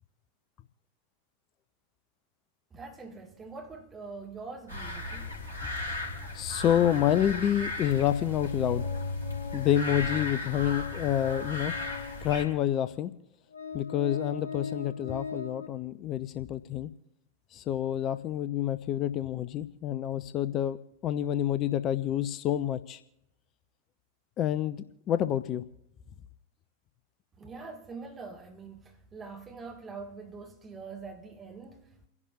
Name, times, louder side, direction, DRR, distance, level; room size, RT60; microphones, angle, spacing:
voice 1, 2.7-5.4 5.8-5.9 27.4-32.1, right 4 dB, 20° right, 2.1 m, -44 dB
sound 1, 4.7-12.4, left 2 dB, 85° right, 2.7 m, -36 dB
voice 2, 6.3-8.9 9.5-11.7 12.2-13.1 13.7-16.9 17.5-20.8 21.0-23.0 24.4-25.6, left 11 dB, 35° left, 0.5 m, -28 dB
Organ, 8.4-12.3 13.0-13.1 13.5-15.7, left 5 dB, 75° left, 1.3 m, -41 dB
29.5 x 11.0 x 2.6 m
figure-of-eight pair, 90°, 0 cm